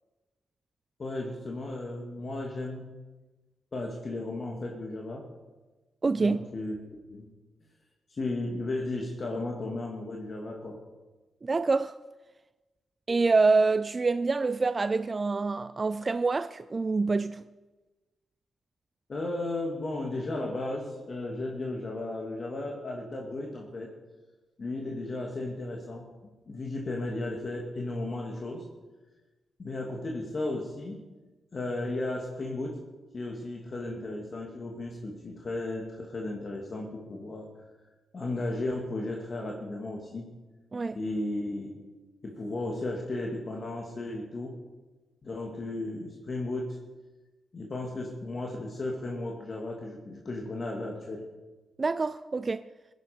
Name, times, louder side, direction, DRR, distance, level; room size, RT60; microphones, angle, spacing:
voice 1, 1.0-2.9 3.7-5.2 6.2-6.8 7.1-7.3 8.1-10.8 19.1-23.9 24.6-26.1 26.5-28.6 29.6-31.0 31.5-32.8 33.1-37.5 38.1-40.3 41.0-41.7 42.2-44.5 45.2-46.8 47.5-51.2, left 2 dB, 50° left, 2.4 m, -34 dB
voice 2, 6.0-6.4 11.4-12.0 13.1-17.4 40.7-41.0 51.8-52.6, right 3 dB, 40° right, 0.4 m, -26 dB
17.0 x 10.5 x 5.2 m
supercardioid pair, 45°, 0 cm